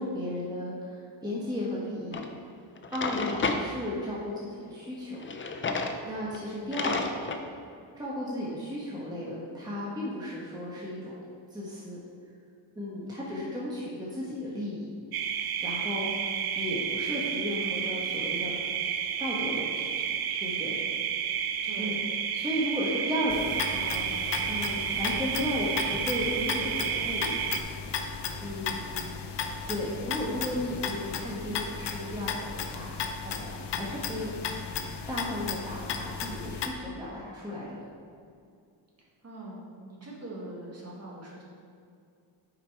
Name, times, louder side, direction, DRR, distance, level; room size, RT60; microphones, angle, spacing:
voice 1, 0.0-2.2 2.9-5.3 6.0-7.2 7.9-11.2 11.5-12.0 12.8-14.9 15.6-16.3 16.6-18.6 19.2-19.9 20.4-20.8 21.8-22.0 22.3-24.1 24.5-27.4 28.4-28.9 29.7-32.9 33.2-34.6 35.1-37.8, left 1 dB, 10° right, -6 dB, 1.1 m, -34 dB
Drawer open or close, 2.1-2.3 2.8-3.6 5.2-6.0 6.3-6.4 6.7-7.4, left 3 dB, 25° left, 0.5 m, -31 dB
voice 2, 6.4-7.0 12.9-13.4 16.1-16.8 21.6-21.9 28.4-28.8 30.2-30.3 39.2-41.4, right 1 dB, 35° right, -4 dB, 1.7 m, -44 dB
sound 1, 15.1-27.6, right 8 dB, 55° right, 0.5 m, -31 dB
sound 2, 23.3-36.7, left 6 dB, 65° left, 0.8 m, -35 dB
8.1 x 5.0 x 4.5 m, 2.4 s
wide cardioid pair, 130°, 45 cm